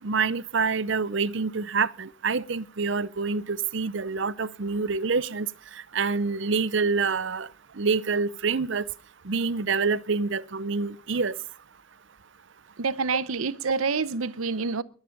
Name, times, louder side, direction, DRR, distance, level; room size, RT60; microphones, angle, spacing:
voice 1, 0.0-5.5 5.9-7.5 7.8-8.8 9.2-11.3, right 4 dB, 60° right, 0.7 m, -26 dB
voice 2, 12.8-14.8, right 4 dB, 90° right, 0.8 m, -27 dB
22.5 x 9.7 x 5.3 m
head